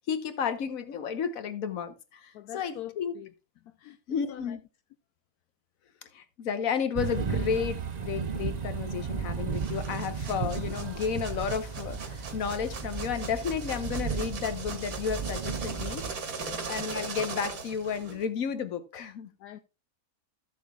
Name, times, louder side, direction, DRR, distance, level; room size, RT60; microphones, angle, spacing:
voice 1, 0.1-3.1 4.1-4.6 6.1-16.1 16.7-19.3, left 7 dB, 65° left, 1.4 m, -32 dB
voice 2, 2.3-3.3 3.6-4.6 16.4-16.7 19.4-19.6, left 13 dB, 80° left, 1.1 m, -44 dB
sound 1, 7.0-16.1, right 6 dB, 40° right, 0.6 m, -34 dB
sound 2, 9.5-18.2, right 4 dB, 75° right, 1.9 m, -40 dB
14.5 x 7.1 x 2.3 m
omnidirectional pair, 1.6 m